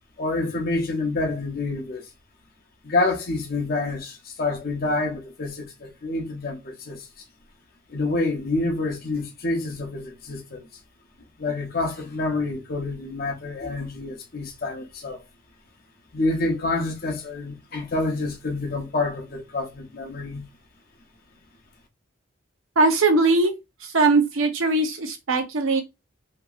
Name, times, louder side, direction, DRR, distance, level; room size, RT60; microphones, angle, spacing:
voice 1, 0.2-2.1 2.8-7.1 7.9-10.7 11.4-15.2 16.1-20.4, left 2 dB, 45° left, 0.7 m, -27 dB
voice 2, 22.8-23.5 23.9-25.8, right 3 dB, 75° right, 0.7 m, -20 dB
2.8 x 2.7 x 2.3 m
head